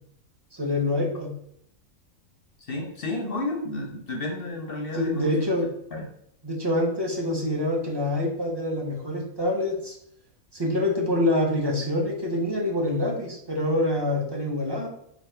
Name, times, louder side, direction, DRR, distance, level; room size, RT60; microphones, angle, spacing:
voice 1, 0.5-1.3 4.9-5.7 6.4-10.0 10.5-14.9, left 1 dB, 25° right, -1 dB, 0.7 m, -26 dB
voice 2, 2.6-5.5 5.9-6.0, left 2 dB, 55° left, 2 dB, 0.7 m, -31 dB
5.1 x 2.4 x 4.3 m, 0.71 s
omnidirectional pair, 1.5 m